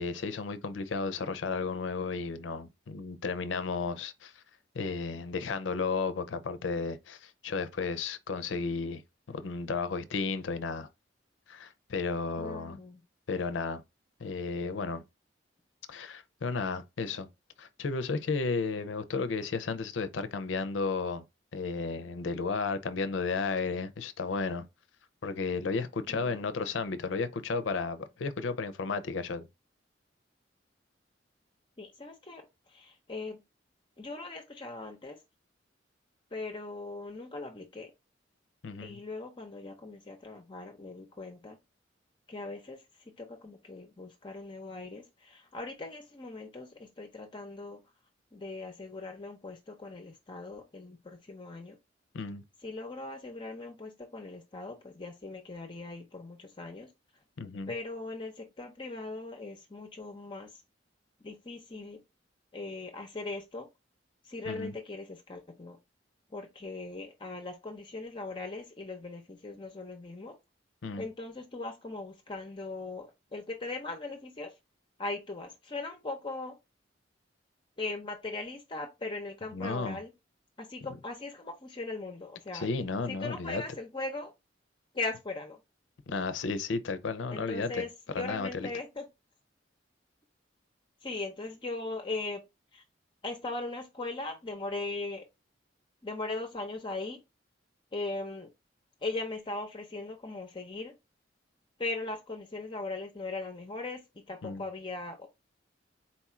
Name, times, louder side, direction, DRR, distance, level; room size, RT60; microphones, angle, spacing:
voice 1, 0.0-4.4 4.7-9.0 9.3-10.9 11.5-12.8 13.3-13.8 14.2-15.0 15.9-17.3 17.6-21.2 21.5-24.7 25.2-29.5 38.6-39.0 52.1-52.4 57.4-57.7 64.5-64.7 70.8-71.0 79.5-80.0 82.5-83.6 86.1-87.8 88.1-88.7 104.4-104.6, left 4 dB, 90° left, 0.5 m, -33 dB
voice 2, 12.4-13.0 26.1-26.4 31.8-32.4 32.7-33.4 34.0-35.2 36.3-37.9 38.8-41.6 42.3-42.8 43.2-47.8 48.3-51.7 52.6-56.9 57.7-60.5 61.2-62.0 62.5-63.7 64.2-65.8 66.3-70.3 71.0-74.5 75.0-76.5 77.8-80.1 80.6-82.7 83.1-84.3 84.9-85.6 87.3-89.0 91.0-92.4 92.7-92.8 93.2-95.2 96.0-97.2 97.9-98.5 99.0-100.9 101.8-104.0 104.3-105.3, left 3 dB, 25° left, 0.6 m, -39 dB
4.3 x 2.4 x 4.2 m
head